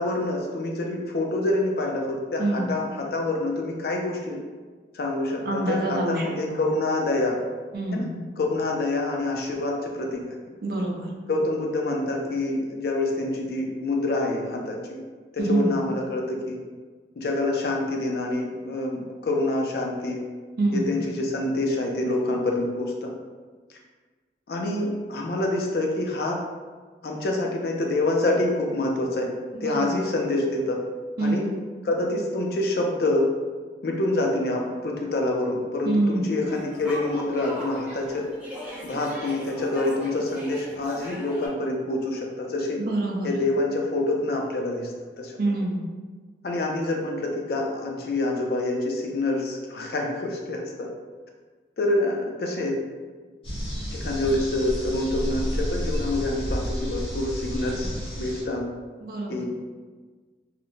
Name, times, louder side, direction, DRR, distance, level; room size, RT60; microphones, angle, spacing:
voice 1, 0.0-4.4 4.9-7.4 7.9-8.0 8.4-10.4 11.3-15.0 15.3-16.6 17.2-20.2 20.7-23.1 24.5-26.4 27.0-29.3 29.6-30.8 31.2-31.5 31.8-33.3 33.8-38.3 38.8-42.8 43.2-44.9 45.2-45.3 46.4-50.9 51.8-52.8 53.9-58.7 59.3-59.5, left 2 dB, 55° left, 1 dB, 0.4 m, -26 dB
voice 2, 2.4-2.7 5.4-6.7 7.7-8.2 10.6-11.1 15.4-15.8 20.6-21.0 29.5-30.1 31.2-31.5 35.8-36.3 42.9-43.3 45.4-45.9 59.0-59.5, right 2 dB, 55° right, 0 dB, 0.4 m, -26 dB
sound 1, 36.5-41.5, equal, 10° right, 0.6 m, -39 dB
sound 2, 53.4-58.4, equal, 30° left, 0.8 m, -31 dB
2.4 x 2.1 x 2.9 m, 1.4 s
head